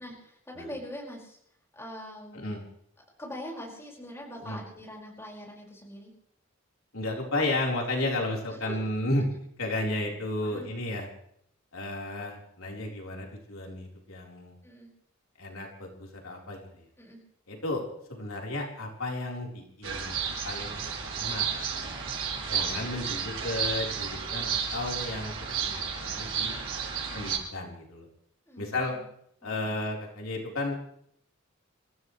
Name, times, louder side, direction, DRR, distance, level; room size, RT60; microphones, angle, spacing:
voice 1, 0.0-1.4 1.7-2.5 3.2-6.1 8.5-8.8 10.4-10.7 14.6-14.9 17.0-17.2 28.5-29.0 29.6-29.8, equal, 10° left, -2 dB, 5.2 m, -43 dB
voice 2, 6.9-9.2 9.6-11.1 11.7-14.5 15.4-16.8 17.5-21.9 22.5-26.5 27.1-28.1 28.6-29.0 29.4-30.8, left 2 dB, 85° left, -1 dB, 4.1 m, -33 dB
sound 1, 19.8-27.4, right 6 dB, 75° right, 6.3 m, -32 dB
28.0 x 14.5 x 3.2 m, 0.69 s
head